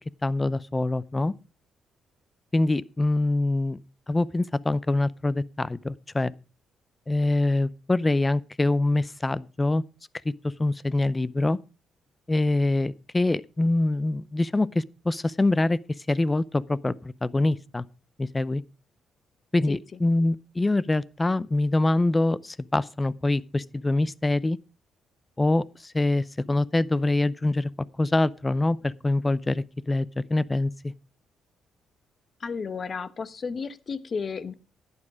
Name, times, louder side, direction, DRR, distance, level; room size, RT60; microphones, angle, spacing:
voice 1, 0.2-1.3 2.5-3.8 4.1-6.3 7.1-9.8 10.2-10.3 10.6-11.6 12.3-15.8 16.1-16.9 17.2-17.9 18.2-18.6 19.5-24.6 25.4-27.7 28.0-30.9, left 2 dB, 20° left, 0.6 m, -24 dB
voice 2, 32.4-34.5, left 5 dB, 40° left, 1.0 m, -33 dB
11.0 x 9.8 x 4.8 m
cardioid pair, 90°, 0 cm